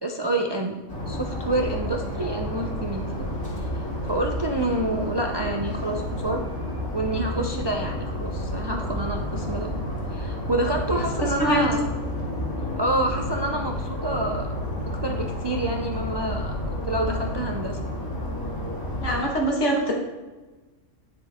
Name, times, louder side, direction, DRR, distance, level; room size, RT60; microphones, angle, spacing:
voice 1, 0.0-0.8 1.1-3.3 3.6-3.8 4.1-6.4 6.9-9.7 10.1-11.8 12.8-14.5 14.8-17.8, right 1 dB, 35° right, 2 dB, 0.4 m, -28 dB
sound 1, 0.9-19.2, left 1 dB, 15° left, 2.6 m, -30 dB
voice 2, 11.4-11.7 19.0-19.9, equal, 70° left, -1 dB, 2.0 m, -23 dB
9.8 x 6.8 x 3.6 m, 1.2 s
omnidirectional pair, 1.3 m